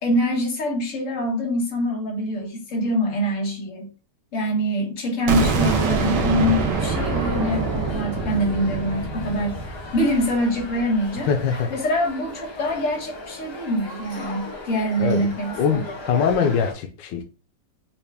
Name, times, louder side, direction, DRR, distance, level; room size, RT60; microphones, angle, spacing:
voice 1, 0.0-3.9 4.3-11.3 11.7-15.8, equal, 50° left, 1.5 m, -24 dB
sound 1, 5.3-11.1, right 4 dB, 80° right, 1.4 m, -25 dB
sound 2, 5.4-16.7, left 2 dB, 20° left, 0.7 m, -37 dB
voice 2, 11.3-11.7 15.0-15.3 15.6-17.2, left 6 dB, 90° left, 1.2 m, -22 dB
4.4 x 2.3 x 3.3 m
omnidirectional pair, 1.8 m